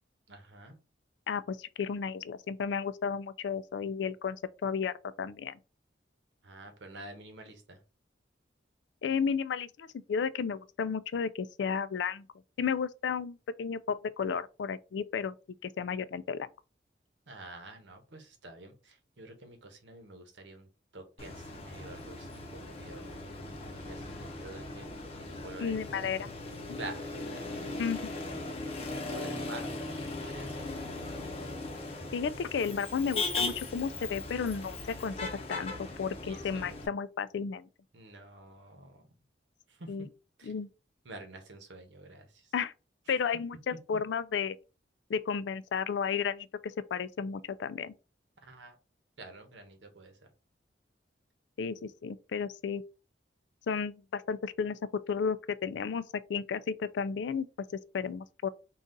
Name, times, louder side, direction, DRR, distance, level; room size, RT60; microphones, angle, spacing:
voice 1, 0.3-0.8 6.4-7.8 17.3-23.2 23.8-26.1 26.8-27.4 29.1-30.7 36.2-36.8 37.9-39.1 39.7-39.9 40.4-40.5 41.0-42.5 48.4-48.8 49.2-50.3, right 2 dB, 85° right, 1.0 m, -48 dB
voice 2, 1.3-5.5 9.0-12.3 12.6-15.3 15.6-16.5 25.6-26.3 26.7-26.8 27.8-28.1 32.1-35.1 35.5-37.7 39.9-40.1 40.4-40.7 42.5-42.7 43.1-44.6 45.1-47.9 51.6-52.8 53.7-54.8 55.1-56.0 56.3-57.5 57.9-58.5, left 6 dB, 75° left, 0.3 m, -33 dB
Motor vehicle (road), 21.2-36.9, left 2 dB, 30° left, 0.7 m, -38 dB
3.9 x 2.4 x 3.8 m
head